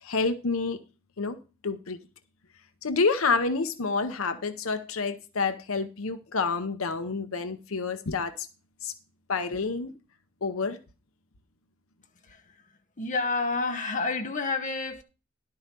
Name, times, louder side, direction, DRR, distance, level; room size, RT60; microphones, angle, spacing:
voice 1, 0.0-0.8 1.2-1.4 1.6-2.0 2.8-8.5 8.8-8.9 9.3-9.9 10.4-10.8, left 4 dB, 80° left, 0.8 m, -28 dB
voice 2, 12.2-12.6 13.0-15.0, left 3 dB, 35° left, 1.2 m, -29 dB
11.5 x 4.7 x 6.7 m
head